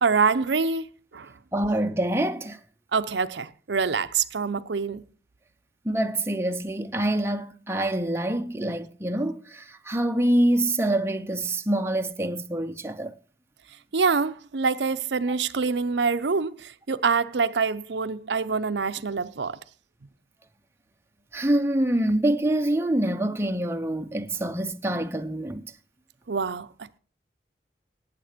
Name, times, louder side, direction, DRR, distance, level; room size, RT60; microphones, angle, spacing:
voice 1, 0.0-0.9 1.1-1.3 2.9-5.0 13.9-19.6 26.3-27.0, right 5 dB, 90° right, 0.7 m, -25 dB
voice 2, 1.5-2.6 5.8-13.1 15.3-15.4 21.3-25.7, right 1 dB, 15° right, 0.7 m, -26 dB
18.0 x 7.5 x 5.1 m
head